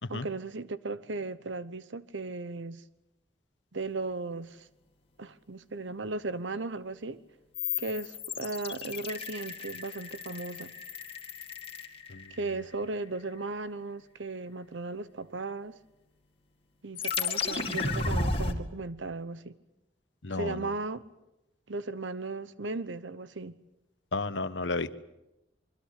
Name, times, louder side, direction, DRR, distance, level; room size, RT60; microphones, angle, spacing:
voice 1, 0.1-2.8 3.7-4.7 5.2-7.2 7.8-10.7 12.3-15.8 16.8-19.5 20.3-21.0 21.7-23.5, right 3 dB, 85° right, 1.0 m, -36 dB
sound 1, 7.5-12.6 17.0-18.5, left 4 dB, 30° left, 2.2 m, -34 dB
voice 2, 20.2-20.7 24.1-24.9, left 3 dB, 80° left, 1.2 m, -32 dB
25.0 x 24.5 x 8.4 m
head